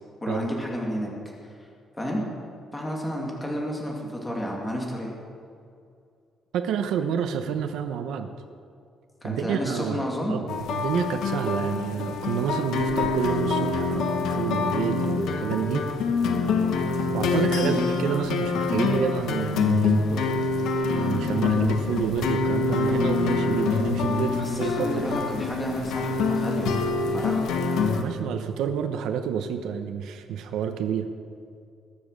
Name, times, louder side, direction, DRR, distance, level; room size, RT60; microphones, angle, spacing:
voice 1, 0.2-1.1 2.0-2.2 2.7-5.1 9.2-10.4 17.6-17.8 24.3-26.7 27.0-27.6, equal, 10° left, -1 dB, 2.2 m, -31 dB
voice 2, 6.5-8.3 9.2-10.4 10.7-15.9 17.1-20.0 20.9-25.2 28.0-31.1, right 8 dB, 85° right, 6 dB, 0.9 m, -29 dB
sound 1, 10.5-28.0, left 4 dB, 75° left, 1.3 m, -25 dB
21.0 x 7.3 x 6.5 m, 2.3 s
cardioid pair, 180°, 0 cm